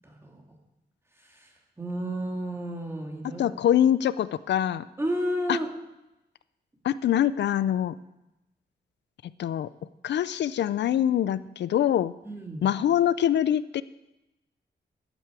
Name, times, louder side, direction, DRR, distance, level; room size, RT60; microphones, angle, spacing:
voice 1, 0.0-0.4 1.2-1.5 1.8-3.5 5.0-5.7 12.3-12.6, right 1 dB, 15° right, 0 dB, 2.2 m, -32 dB
voice 2, 3.4-4.9 5.5-5.6 6.8-7.9 9.4-9.7 10.0-12.1 12.6-13.8, left 10 dB, 80° left, 16 dB, 0.4 m, -24 dB
12.5 x 9.1 x 4.9 m, 0.94 s
wide cardioid pair, 135°, 18 cm